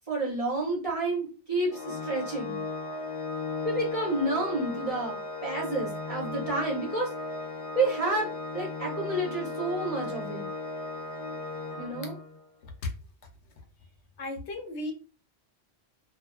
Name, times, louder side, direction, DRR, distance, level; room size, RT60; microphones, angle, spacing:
voice 1, 0.1-2.6 3.6-7.1 7.7-10.5 11.8-12.1, right 2 dB, 35° right, -3 dB, 0.8 m, -30 dB
Organ, 1.7-12.4, left 3 dB, 45° left, 0.4 m, -36 dB
voice 2, 14.2-14.9, left 2 dB, 80° left, 4 dB, 0.9 m, -35 dB
2.5 x 2.3 x 2.2 m, 0.33 s
omnidirectional pair, 1.1 m